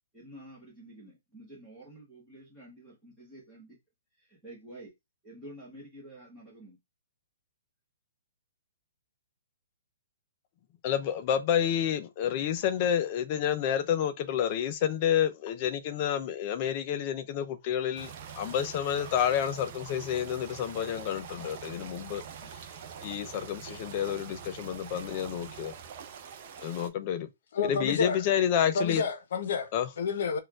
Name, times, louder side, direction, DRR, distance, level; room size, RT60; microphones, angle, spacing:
voice 1, 0.1-3.8 4.1-4.9 5.2-6.8, right 1 dB, 5° right, 0.9 m, -49 dB
voice 2, 10.8-22.2 23.0-25.7 26.6-27.3 27.7-29.0 29.7-29.9, left 9 dB, 25° left, 0.3 m, -29 dB
sound 1, 18.0-26.9, right 7 dB, 30° right, 0.5 m, -44 dB
voice 3, 27.5-28.2 28.7-29.7 30.0-30.4, left 5 dB, 50° left, 0.7 m, -29 dB
4.3 x 2.2 x 2.3 m
hypercardioid pair, 175°, 0 cm